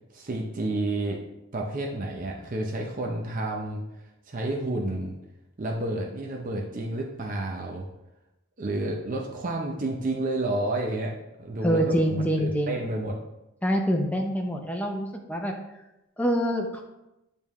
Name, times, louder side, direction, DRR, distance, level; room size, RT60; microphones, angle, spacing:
voice 1, 0.1-1.2 1.5-3.8 4.3-5.2 5.6-7.9 8.6-13.2, right 2 dB, 35° right, 0 dB, 0.5 m, -30 dB
voice 2, 11.6-12.8 13.6-15.5 16.2-16.8, equal, 5° left, 2 dB, 0.6 m, -25 dB
8.6 x 3.5 x 3.1 m, 0.91 s
head